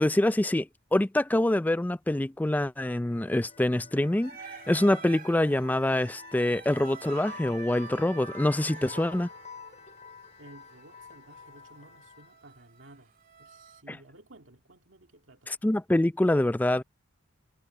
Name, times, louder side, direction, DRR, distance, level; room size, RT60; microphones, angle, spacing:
voice 1, 0.0-9.3 15.5-16.8, left 1 dB, 10° left, 0.3 m, -25 dB
sound 1, 3.0-12.4, left 5 dB, 35° left, 3.3 m, -49 dB
sound 2, 4.2-13.8, right 5 dB, 45° right, 2.6 m, -47 dB
voice 2, 10.4-15.5, right 2 dB, 70° right, 2.2 m, -54 dB
head